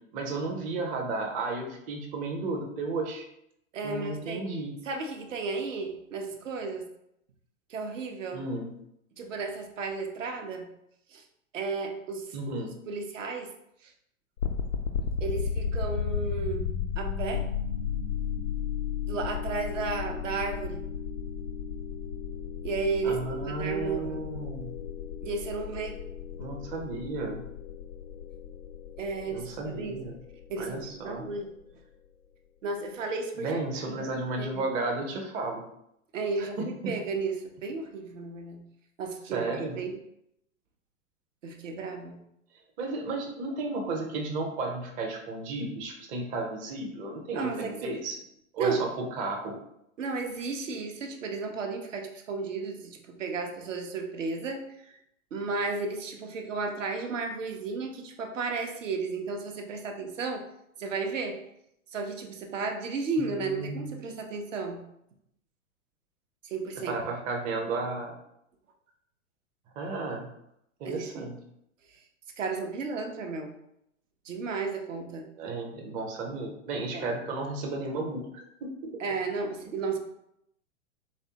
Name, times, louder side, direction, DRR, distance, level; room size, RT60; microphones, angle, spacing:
voice 1, 0.1-3.3 3.8-4.8 8.3-8.7 12.3-12.7 23.0-24.7 26.4-27.5 29.3-30.2 30.6-31.2 33.4-35.6 36.4-36.9 39.3-39.8 42.8-48.2 48.5-49.6 63.2-64.0 66.9-68.2 69.8-70.3 70.8-71.4 75.4-79.0, right 3 dB, 20° right, 1 dB, 0.6 m, -33 dB
voice 2, 3.7-4.4 4.8-6.9 7.7-8.4 9.2-10.7 11.1-11.2 11.5-13.5 13.8-13.9 15.2-16.6 17.0-17.4 19.1-20.8 22.6-24.2 25.2-25.9 29.0-30.0 30.5-31.5 32.6-33.6 33.8-34.1 34.4-34.6 36.1-36.6 36.9-38.6 39.0-39.5 39.7-39.9 41.4-42.2 47.3-48.0 48.6-48.8 50.0-54.6 54.9-55.0 55.3-60.4 60.8-61.4 61.9-64.8 66.4-66.9 70.8-71.3 72.4-73.5 74.2-75.2 76.9-77.1 79.0-80.0, right 4 dB, 70° right, 3 dB, 0.8 m, -33 dB
sound 1, 14.4-31.3, left 7 dB, 85° left, 0.6 m, -34 dB
4.1 x 3.3 x 2.8 m, 0.77 s
figure-of-eight pair, 100°, 40 cm